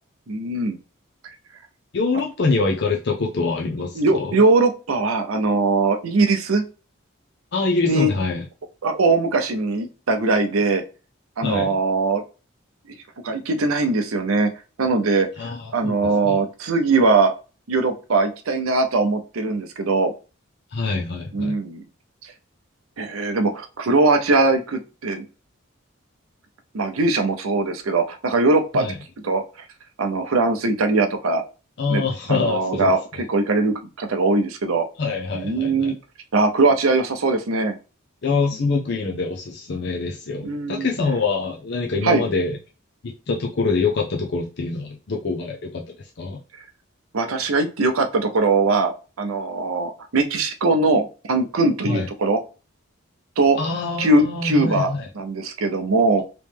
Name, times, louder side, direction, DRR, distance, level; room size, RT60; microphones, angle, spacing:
voice 1, 0.3-0.8 3.9-6.6 7.8-8.1 8.8-10.8 11.4-12.2 13.2-14.5 14.8-17.3 17.7-20.1 21.3-21.8 23.0-25.2 26.7-28.8 29.2-29.4 30.0-31.4 31.9-33.0 33.3-34.9 35.3-36.0 36.3-37.7 40.4-40.9 42.0-42.2 47.1-52.4 53.4-53.6 54.0-56.2, right 3 dB, 85° right, 6 dB, 0.6 m, -21 dB
voice 2, 1.9-4.3 7.5-8.5 11.4-11.7 15.4-16.4 20.7-21.6 28.7-29.0 31.8-33.2 35.0-35.9 38.2-42.6 43.0-45.8 46.2-46.4 51.8-52.1 53.6-55.1, left 4 dB, 55° left, 0 dB, 0.5 m, -25 dB
3.1 x 3.0 x 3.4 m, 0.33 s
head